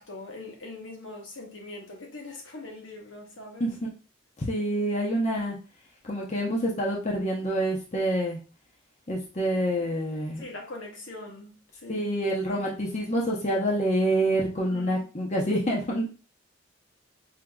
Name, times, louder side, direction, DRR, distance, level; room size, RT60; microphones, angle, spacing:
voice 1, 0.0-3.7 10.4-11.6 11.8-12.1 14.7-15.0, left 2 dB, 75° left, 1.1 m, -42 dB
voice 2, 4.4-5.6 6.0-8.4 9.1-10.4 11.9-16.1, right 1 dB, 35° left, 0.8 m, -27 dB
5.0 x 2.8 x 2.3 m
head